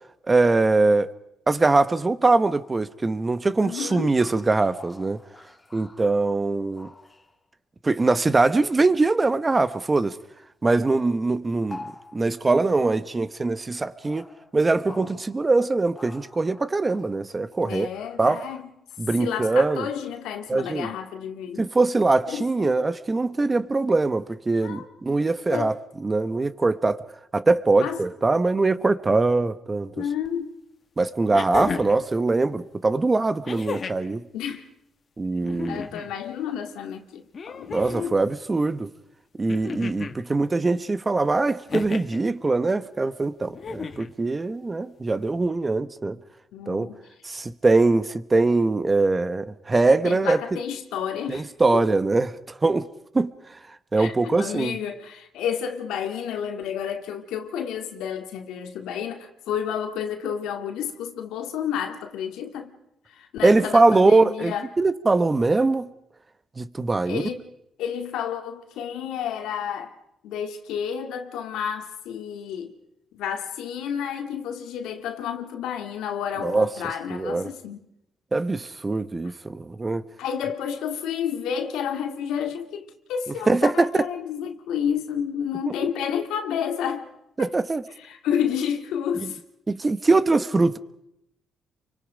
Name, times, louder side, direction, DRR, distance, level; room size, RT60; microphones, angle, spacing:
voice 1, 0.3-1.1 1.5-5.2 5.7-6.9 7.8-10.2 10.6-11.8 12.1-14.3 14.5-17.9 18.2-18.4 19.0-19.9 20.5-20.9 21.6-25.7 26.0-27.0 27.3-29.9 31.0-34.2 35.2-35.8 37.7-38.9 39.4-46.2 46.7-46.9 47.2-50.4 51.3-52.9 53.1-53.3 53.9-54.8 63.4-65.9 66.6-67.3 76.4-76.7 77.1-77.5 78.3-80.1 83.5-84.1 87.4-87.8 89.2-89.3 89.7-90.8, right 3 dB, 25° right, 1.0 m, -22 dB
voice 2, 3.6-4.1 17.6-18.7 19.2-21.6 22.3-22.7 24.6-24.9 25.5-25.7 27.8-28.0 30.0-30.5 34.3-34.6 35.7-38.2 46.5-47.0 50.0-51.5 51.7-51.9 54.0-62.7 63.1-64.7 67.1-67.4 67.8-69.9 70.2-72.7 73.1-77.8 80.2-87.1 87.4-87.5 88.0-89.4, left 8 dB, 90° left, 2.3 m, -30 dB
sound 1, 4.2-6.4 6.7-7.4 10.0-10.2 11.5-12.8 13.7-15.6 15.9-17.3 17.9-18.3 18.9-19.0, left 3 dB, 20° left, 2.4 m, -46 dB
sound 2, 30.2-30.3 31.3-32.0 33.4-34.1 35.4-36.1 37.3-38.1 39.5-40.2 41.7-42.2 43.5-44.1 45.4-45.5, left 5 dB, 45° left, 1.8 m, -33 dB
28.5 x 24.5 x 5.1 m
cardioid pair, 90°, 0 cm